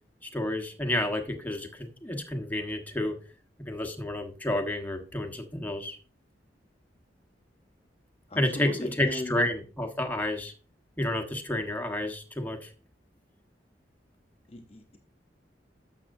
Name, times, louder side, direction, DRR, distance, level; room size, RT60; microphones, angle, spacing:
voice 1, 0.2-3.2 3.6-6.0 8.3-10.5 11.0-12.7, left 1 dB, 10° left, 2 dB, 1.3 m, -30 dB
voice 2, 8.3-9.3 14.5-15.0, left 1 dB, 35° left, 4 dB, 0.8 m, -37 dB
12.0 x 7.3 x 2.7 m, 0.37 s
head